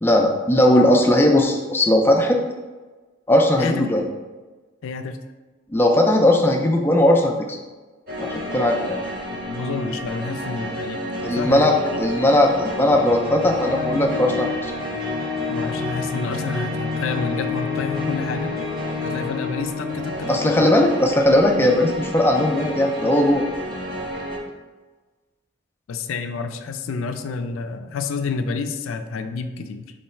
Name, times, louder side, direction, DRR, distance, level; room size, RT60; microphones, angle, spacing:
voice 1, 0.0-2.4 3.3-4.0 5.7-7.6 8.2-9.0 11.2-14.7 20.3-23.4, left 1 dB, 10° left, 2 dB, 0.4 m, -18 dB
voice 2, 3.6-3.9 4.8-5.2 9.5-11.0 11.4-12.0 15.5-18.5 19.0-20.8 25.9-29.8, left 4 dB, 85° left, 8 dB, 0.4 m, -29 dB
sound 1, 8.1-24.4, left 2 dB, 45° right, 1.0 m, -29 dB
3.9 x 3.2 x 4.2 m, 1.3 s
head